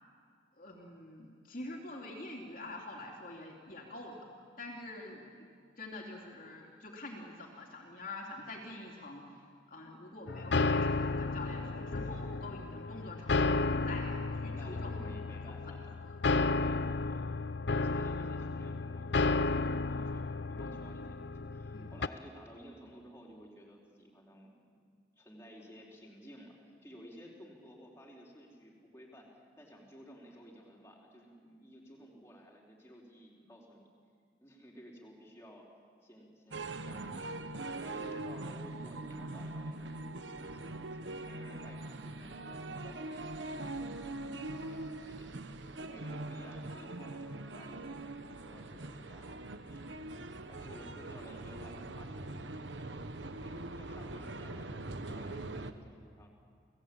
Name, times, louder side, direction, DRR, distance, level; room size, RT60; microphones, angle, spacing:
voice 1, 0.5-4.3 4.6-5.5 5.8-9.3 9.7-15.1 15.4-16.2 16.5-16.7 21.7-21.9 38.0-38.2 47.1-47.3, left 2 dB, 50° left, -1 dB, 3.2 m, -46 dB
sound 1, 10.3-22.1, left 3 dB, 70° left, 0.7 m, -33 dB
voice 2, 14.1-16.0 16.5-29.3 29.6-33.9 34.4-35.7 36.0-45.3 45.8-50.0 50.4-52.6 53.1-56.3, equal, 15° left, -2 dB, 4.5 m, -55 dB
sound 2, 36.5-55.7, right 2 dB, 80° right, 1.3 m, -42 dB
30.0 x 19.0 x 8.9 m, 2.1 s
head